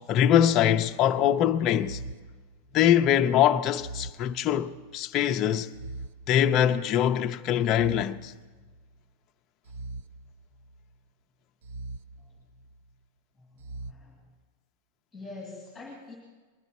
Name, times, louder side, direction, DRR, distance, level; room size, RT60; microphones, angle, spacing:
voice 1, 0.1-2.0 2.7-5.7 6.3-8.3, left 10 dB, 25° left, 0.4 m, -23 dB
sound 1, 1.8-3.1 3.7-5.0 5.7-7.0 7.7-9.0 9.7-11.0 11.6-12.9 13.6-13.9, right 2 dB, 55° right, 0.4 m, -43 dB
voice 2, 13.4-14.3 15.1-16.1, left 3 dB, ahead, 2.0 m, -45 dB
20.5 x 12.0 x 4.1 m
supercardioid pair, 180°, 0 cm